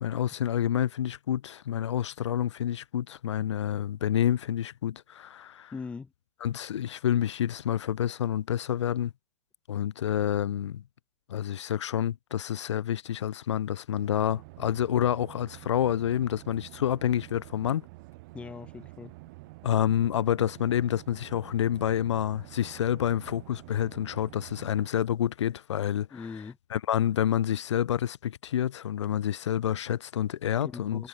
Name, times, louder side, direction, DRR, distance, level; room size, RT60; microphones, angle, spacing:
voice 1, 0.0-5.7 6.4-9.1 9.7-10.8 11.3-17.8 19.6-26.2 26.7-31.1, left 10 dB, 85° left, 0.9 m, -28 dB
voice 2, 5.7-6.1 18.3-19.2 26.1-26.6 30.6-31.1, left 5 dB, 10° left, 0.5 m, -40 dB
sound 1, 13.9-24.9, right 24 dB, 45° right, 2.1 m, -48 dB
hypercardioid pair, 145°, 15 cm